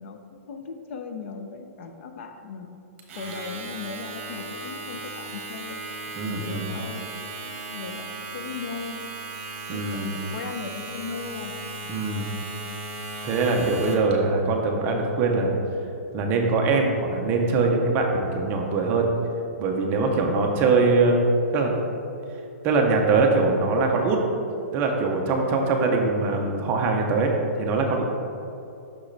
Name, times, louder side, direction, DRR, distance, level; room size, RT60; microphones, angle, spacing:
voice 1, 0.0-2.8 3.2-5.8 6.3-9.0 9.7-11.5, left 5 dB, 55° left, 6 dB, 0.5 m, -37 dB
Domestic sounds home sounds, 3.0-14.1, right 3 dB, 45° right, 1.3 m, -36 dB
voice 2, 6.2-6.7 9.7-10.2 11.9-12.3 13.2-15.5 16.1-19.1 19.6-21.8 22.6-24.2 24.7-27.3 27.6-28.0, right 3 dB, 20° right, 2 dB, 0.6 m, -22 dB
6.2 x 6.1 x 3.2 m, 2.7 s
hypercardioid pair, 165°, 8 cm